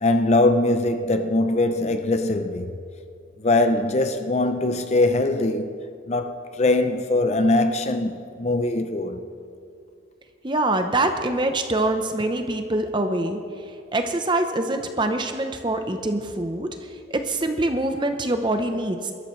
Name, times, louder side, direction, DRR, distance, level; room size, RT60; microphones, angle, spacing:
voice 1, 0.0-2.7 3.4-5.7 6.1-9.2, left 2 dB, 35° left, 0.5 m, -21 dB
voice 2, 10.4-19.1, right 2 dB, 25° right, 0.8 m, -25 dB
21.0 x 13.0 x 3.2 m
head